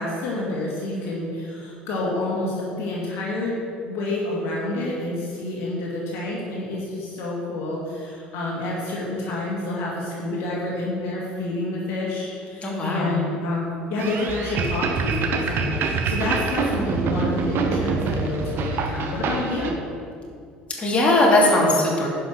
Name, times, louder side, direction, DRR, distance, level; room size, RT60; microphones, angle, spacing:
voice 1, 0.0-3.6 3.8-19.8, left 2 dB, 55° left, -4 dB, 2.2 m, -28 dB
voice 2, 12.6-13.2 20.8-22.1, left 1 dB, 25° left, -3 dB, 2.6 m, -19 dB
sound 1, 14.0-19.7, right 4 dB, 45° right, 1.1 m, -25 dB
10.5 x 5.7 x 6.1 m, 2.3 s
figure-of-eight pair, 60°, 5 cm